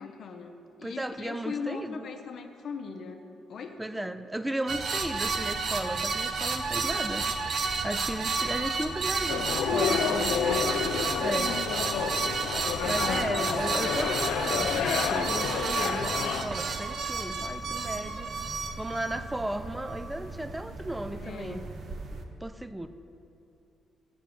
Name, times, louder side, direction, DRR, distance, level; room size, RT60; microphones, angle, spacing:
voice 1, 0.0-3.8 8.4-8.8 11.4-12.1 21.1-21.6, left 5 dB, 60° left, 5 dB, 0.7 m, -40 dB
voice 2, 0.8-2.1 3.8-7.2 7.8-10.4 11.2-11.5 12.8-18.3 18.8-21.7 22.4-22.9, right 1 dB, 10° right, 11 dB, 0.4 m, -35 dB
sound 1, 4.7-22.2, right 4 dB, 55° right, 0.6 m, -31 dB
sound 2, 9.3-16.4, left 8 dB, 80° left, 0.3 m, -30 dB
7.1 x 4.9 x 7.0 m, 2.7 s
cardioid pair, 90°, 0 cm